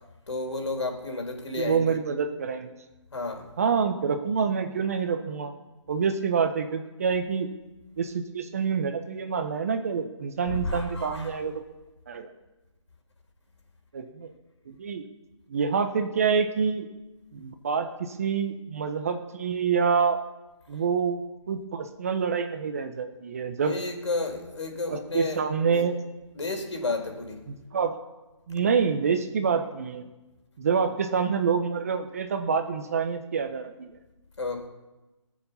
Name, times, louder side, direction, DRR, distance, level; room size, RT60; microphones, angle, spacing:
voice 1, 0.3-2.0 3.1-3.5 10.5-11.3 23.6-25.4 25.7-25.8 26.3-27.4 34.4-34.7, left 3 dB, 65° left, 3 dB, 4.1 m, -32 dB
voice 2, 1.6-2.7 3.6-5.5 5.9-7.5 8.0-11.6 12.1-12.3 13.9-14.3 14.7-15.0 15.5-16.9 17.3-20.2 20.7-21.2 21.5-23.8 24.9-25.9 27.7-27.9 28.5-30.0 30.6-34.0, right 6 dB, 30° right, 8 dB, 0.8 m, -27 dB
20.5 x 7.3 x 7.0 m, 1.1 s
hypercardioid pair, 165°, 16 cm